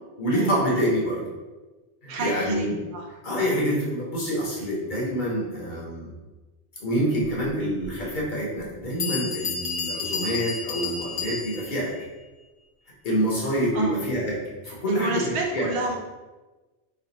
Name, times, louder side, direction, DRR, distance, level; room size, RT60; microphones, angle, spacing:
voice 1, 0.2-1.2 2.0-2.8 3.2-6.1 6.8-11.9 13.0-14.4 14.7-15.8, equal, 50° left, -5 dB, 1.0 m, -26 dB
voice 2, 2.1-2.7 2.9-3.1 13.7-14.0 14.7-16.0, right 3 dB, 75° right, 1 dB, 0.9 m, -30 dB
Bell, 7.8-7.9 8.6-8.7 9.0-11.8, left 5 dB, 85° left, 1.0 m, -31 dB
3.3 x 2.2 x 4.0 m, 1.2 s
omnidirectional pair, 1.1 m